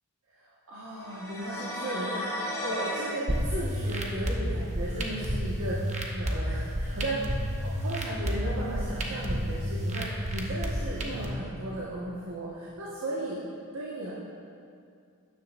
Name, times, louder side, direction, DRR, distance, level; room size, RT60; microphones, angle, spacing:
voice 1, 0.4-5.8 6.1-13.4 13.7-14.1, right 1 dB, 75° right, -7 dB, 1.5 m, -35 dB
sound 1, 1.0-3.2, left 1 dB, 15° left, 1.0 m, -34 dB
sound 2, 3.3-11.3, equal, 35° right, 1.0 m, -31 dB
12.5 x 10.0 x 2.6 m, 2.4 s
head